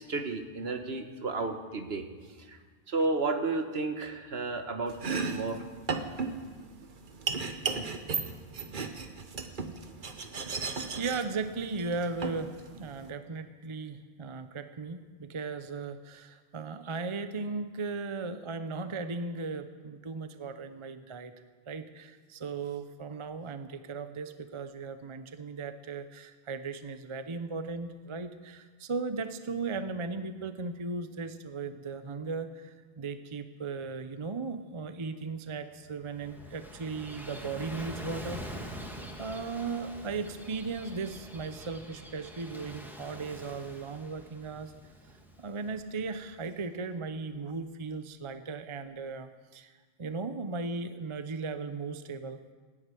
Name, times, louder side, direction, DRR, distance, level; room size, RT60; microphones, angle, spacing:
voice 1, 0.0-2.6 2.9-5.6, right 3 dB, 65° right, 6 dB, 1.5 m, -32 dB
Domestic sounds home sounds, 4.9-13.1, right 4 dB, 50° right, 1.2 m, -36 dB
voice 2, 10.5-12.5 12.8-21.3 21.7-38.7 39.2-44.7 45.4-49.7 50.0-52.4, right 4 dB, 30° right, 10 dB, 0.7 m, -37 dB
Gull seagull / Waves surf, 35.8-46.4, equal, ahead, 1.8 m, -45 dB
15.5 x 10.0 x 9.1 m, 1.4 s
omnidirectional pair, 1.1 m